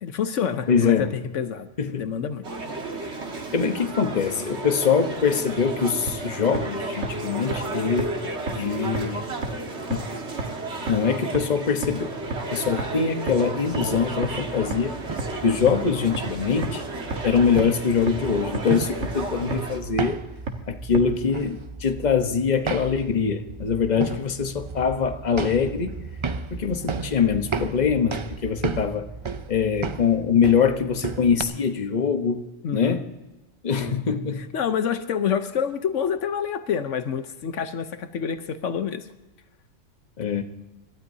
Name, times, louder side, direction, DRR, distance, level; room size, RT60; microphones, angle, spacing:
voice 1, 0.0-1.7 2.0-2.4 24.1-24.2 32.6-33.0 33.8-34.0 34.4-39.1, left 7 dB, 80° left, 10 dB, 1.2 m, -27 dB
voice 2, 0.7-1.1 1.8-2.1 3.5-8.2 8.5-9.2 9.9-10.1 10.9-12.2 12.5-14.9 15.4-16.8 17.2-20.2 20.7-26.0 26.6-29.1 29.5-33.0 33.6-34.5 40.2-40.4, left 6 dB, 35° left, 6 dB, 1.1 m, -23 dB
sound 1, 2.4-19.8, right 2 dB, 65° right, 2.1 m, -33 dB
sound 2, 6.1-6.2 6.5-6.6 7.0-7.1 7.5-7.6 8.0-8.1 8.5-8.6 8.9-9.0 9.4-9.5 9.9-10.0 10.4-10.5 10.9-11.0 11.3-11.4 11.8-11.9 12.3-12.4 12.8-12.9 13.3-13.4 13.7-13.8 14.2-14.3 14.7-14.8 15.2-15.3 15.7-15.8 16.1-16.2 16.6-16.7 17.1-17.2 17.6-17.7 18.1-18.2 18.5-18.6 19.0-19.1 19.5-19.6 20.0-20.1 20.5-20.6 20.9-21.0, right 3 dB, 80° right, 1.8 m, -28 dB
sound 3, 13.7-31.4, right 4 dB, 40° right, 0.4 m, -35 dB
26.5 x 12.5 x 2.7 m, 1.1 s
omnidirectional pair, 1.3 m